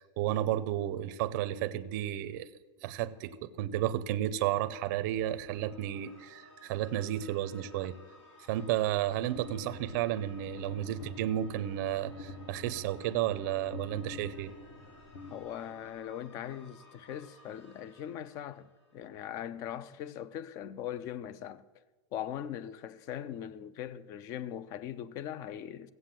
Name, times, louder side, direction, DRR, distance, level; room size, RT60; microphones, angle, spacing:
voice 1, 0.0-2.5 2.8-7.9 8.5-14.5, right 12 dB, 35° right, 0.6 m, -32 dB
sound 1, 5.0-19.4, left 2 dB, 85° left, 4.2 m, -57 dB
sound 2, 9.4-16.0, left 2 dB, 45° left, 1.3 m, -47 dB
voice 2, 15.3-21.6 22.1-25.9, left 10 dB, 20° left, 0.4 m, -40 dB
15.0 x 8.0 x 7.5 m
supercardioid pair, 170°, 16 cm